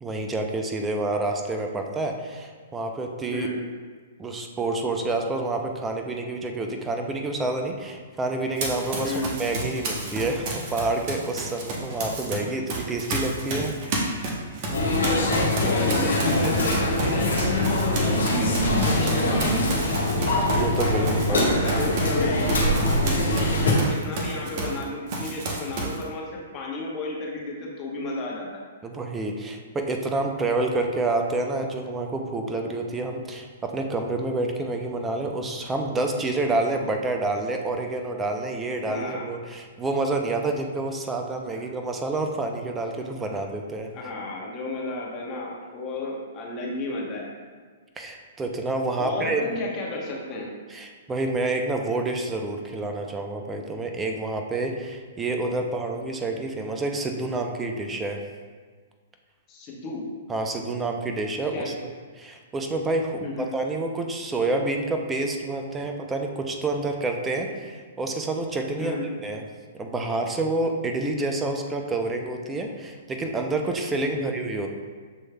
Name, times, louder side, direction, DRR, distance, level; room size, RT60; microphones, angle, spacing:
voice 1, 0.0-3.5 4.2-14.3 20.5-21.4 28.8-43.9 48.0-49.5 50.7-58.2 60.3-61.7 62.2-68.9 69.2-69.4 69.7-74.7, right 2 dB, 15° right, 3 dB, 0.5 m, -28 dB
Run, 8.6-12.4 12.7-24.8 25.1-26.0, right 2 dB, 45° right, 0.9 m, -31 dB
sound 1, 14.7-23.7, left 1 dB, 80° left, 1.0 m, -23 dB
voice 2, 15.6-17.6 18.0-18.4 18.7-19.8 20.9-28.6 38.9-39.3 43.9-47.3 49.0-50.5 59.5-60.0 61.5-61.7 63.2-63.5 68.8-69.0 74.1-74.3, left 2 dB, 30° left, -2 dB, 1.0 m, -33 dB
7.0 x 3.1 x 2.2 m, 1.5 s
hypercardioid pair, 125°, 0 cm